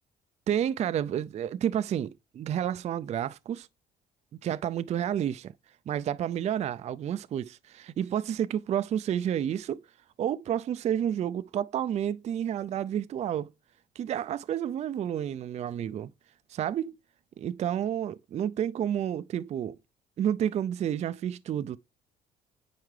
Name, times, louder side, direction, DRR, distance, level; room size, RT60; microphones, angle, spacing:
voice 1, 0.5-3.7 4.4-5.5 5.9-9.8 10.2-13.5 14.0-16.1 16.5-16.9 17.4-19.8 20.2-21.8, right 10 dB, 40° right, 0.4 m, -30 dB
9.3 x 4.5 x 3.2 m
cardioid pair, 110°, 17 cm